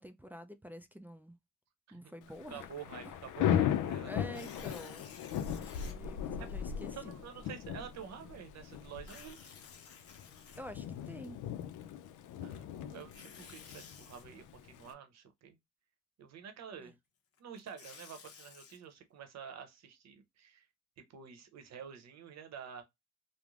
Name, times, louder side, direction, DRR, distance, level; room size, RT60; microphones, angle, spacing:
voice 1, 0.0-1.4 1.9-2.7 4.1-5.1 5.5-7.0 10.6-11.4 16.8-16.9, equal, 5° right, 0.3 m, -48 dB
Thunder / Rain, 2.3-14.9, left 9 dB, 80° left, 0.5 m, -37 dB
voice 2, 2.5-4.1 6.4-6.5 6.9-9.6 12.4-15.6 16.2-17.0 17.4-20.7 21.0-22.8, right 8 dB, 60° right, 0.8 m, -49 dB
Tearing, 4.3-5.9 6.6-6.7 8.9-11.1 12.9-14.2 17.4-18.8, left 6 dB, 50° left, 0.8 m, -54 dB
3.1 x 2.0 x 2.4 m
cardioid pair, 90°, 30 cm